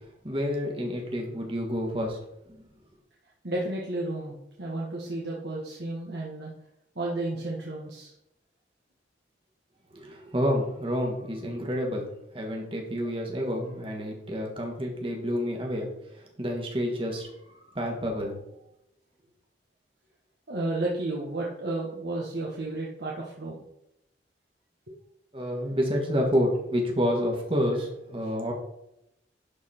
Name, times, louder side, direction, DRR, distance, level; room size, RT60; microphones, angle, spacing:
voice 1, 0.2-2.2 2.5-2.6 9.9-18.4 25.3-28.5, equal, 30° right, 0 dB, 1.6 m, -29 dB
voice 2, 3.4-6.5 7.0-8.1 20.5-23.6, right 2 dB, 65° right, -3 dB, 1.3 m, -32 dB
11.5 x 4.1 x 4.4 m, 0.85 s
head